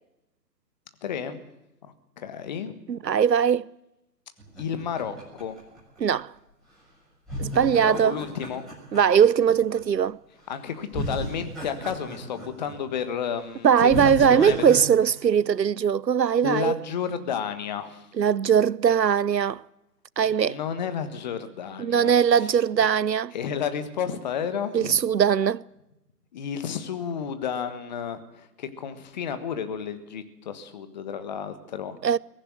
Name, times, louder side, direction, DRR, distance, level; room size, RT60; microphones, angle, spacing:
voice 1, 1.0-1.4 2.2-2.7 4.6-5.6 7.8-8.7 10.5-14.7 16.4-18.1 20.4-22.5 23.3-25.0 26.3-32.0, left 7 dB, 25° left, 1.4 m, -32 dB
voice 2, 2.9-3.7 6.0-6.3 7.4-8.2 8.9-10.2 13.6-16.7 18.2-19.6 20.2-20.6 21.8-23.3 24.7-25.6 32.0-32.2, right 8 dB, 80° right, 0.8 m, -20 dB
sound 1, 4.4-6.4 7.3-9.8 10.4-10.6 10.9-13.0 13.4-13.5 13.9-14.8, right 1 dB, ahead, 6.8 m, -35 dB
22.5 x 15.0 x 9.2 m
figure-of-eight pair, 140°, 49 cm